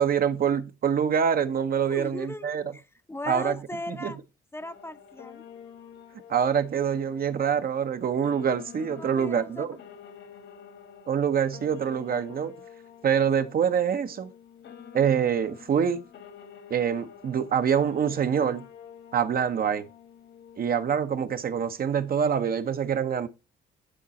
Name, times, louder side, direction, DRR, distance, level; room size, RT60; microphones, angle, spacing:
voice 1, 0.0-2.6 3.3-3.6 4.0-4.1 6.3-9.8 11.1-12.5 13.0-14.3 14.9-16.0 16.7-18.6 19.1-19.9 20.6-23.3, right 7 dB, 50° right, 0.7 m, -25 dB
voice 2, 1.9-2.5 2.7-4.2 4.5-5.4 8.8-9.7, left 1 dB, 10° left, 0.6 m, -38 dB
sound 1, 4.6-21.0, left 8 dB, 70° left, 1.8 m, -48 dB
10.0 x 4.0 x 4.1 m
cardioid pair, 90°, 20 cm